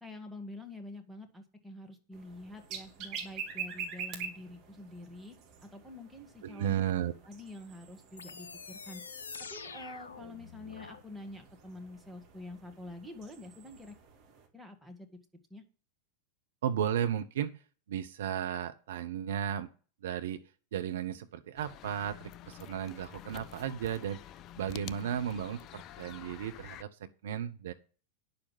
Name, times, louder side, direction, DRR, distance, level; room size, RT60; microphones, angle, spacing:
voice 1, 0.0-5.4 5.6-6.8 7.3-9.0 9.5-14.0 14.5-15.1 15.5-15.6, left 2 dB, 5° right, 2 dB, 1.8 m, -47 dB
sound 1, 2.1-14.5, right 6 dB, 40° right, 2.4 m, -46 dB
voice 2, 6.4-7.1 16.6-17.5 17.9-19.7 20.0-20.4 20.7-24.2 24.6-27.7, right 9 dB, 60° right, 9 dB, 0.8 m, -34 dB
sound 2, 8.2-11.0, left 5 dB, 70° left, 0.6 m, -46 dB
sound 3, 21.6-26.8, left 11 dB, 35° left, 0.4 m, -48 dB
10.0 x 6.8 x 6.0 m, 0.37 s
figure-of-eight pair, 90°, 0 cm